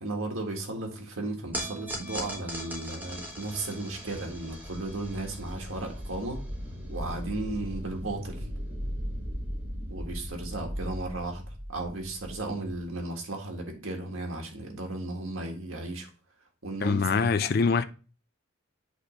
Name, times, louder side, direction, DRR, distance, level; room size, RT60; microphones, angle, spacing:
voice 1, 0.0-6.4 6.9-8.5 9.9-11.4 11.7-16.1 16.6-17.3, right 2 dB, 85° right, 1.8 m, -35 dB
sound 1, 1.5-7.9, right 1 dB, 10° right, 1.4 m, -41 dB
sound 2, 3.0-12.8, equal, 70° right, 4.2 m, -38 dB
voice 2, 16.8-17.8, left 5 dB, 50° left, 0.4 m, -24 dB
8.1 x 3.3 x 5.2 m
head